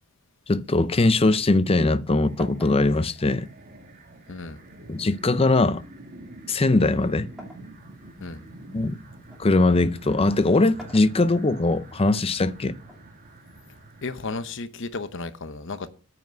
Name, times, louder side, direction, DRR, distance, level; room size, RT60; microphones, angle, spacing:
voice 1, 0.5-3.5 4.9-5.8 6.5-7.3 8.7-9.0 9.4-12.8, left 2 dB, 25° left, 0.6 m, -21 dB
sound 1, 0.8-2.0 2.4-4.3 5.2-7.7 8.3-9.5 10.5-11.7 12.8-13.9, equal, ahead, 2.8 m, -48 dB
sound 2, 2.1-14.5, right 1 dB, 40° right, 1.9 m, -46 dB
voice 2, 4.3-4.6 8.2-8.4 14.0-15.9, left 3 dB, 55° left, 0.9 m, -33 dB
9.2 x 5.9 x 7.8 m
head